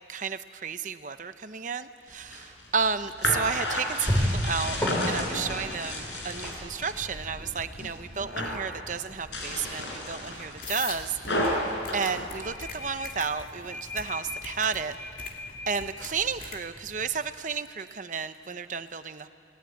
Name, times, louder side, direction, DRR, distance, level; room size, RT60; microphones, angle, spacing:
voice 1, 0.1-4.8 5.1-11.1 11.9-14.9 15.7-19.3, right 6 dB, 45° right, 10 dB, 0.8 m, -32 dB
sound 1, 2.1-7.0 7.4-7.9 8.2-8.7 9.2-13.1, left 1 dB, 85° left, 5.3 m, -32 dB
sound 2, 2.8-17.2, equal, 10° left, 5.6 m, -37 dB
sound 3, 10.6-16.6, left 5 dB, 50° left, 2.7 m, -42 dB
29.0 x 19.0 x 9.3 m, 2.3 s
head